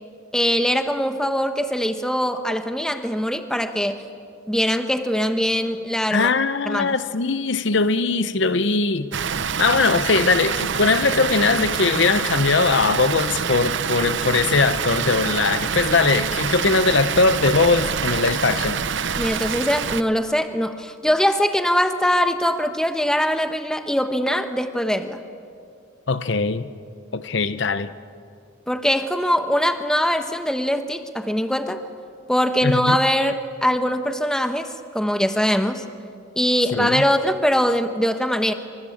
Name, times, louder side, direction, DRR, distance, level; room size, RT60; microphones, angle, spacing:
voice 1, 0.3-4.0 4.5-6.3 6.7-6.9 19.2-25.2 28.7-31.9 32.3-35.8 36.4-38.5, equal, 5° left, 1.2 m, -22 dB
voice 2, 6.1-9.1 9.6-18.8 26.1-26.7 27.1-27.9 32.6-33.0 36.7-37.0, left 4 dB, 60° left, 0.8 m, -20 dB
Water, 9.1-20.0, right 6 dB, 60° right, 0.7 m, -26 dB
26.5 x 25.0 x 8.6 m
head